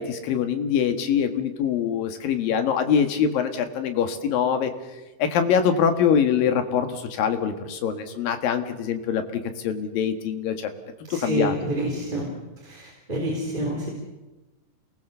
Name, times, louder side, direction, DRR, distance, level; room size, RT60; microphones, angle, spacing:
voice 1, 0.0-4.7 5.2-10.7 11.1-11.6, left 7 dB, 80° left, 7 dB, 3.4 m, -24 dB
voice 2, 11.1-12.3 12.6-13.9, right 1 dB, 15° right, -2 dB, 3.7 m, -28 dB
27.5 x 20.0 x 6.9 m, 1.1 s
omnidirectional pair, 4.0 m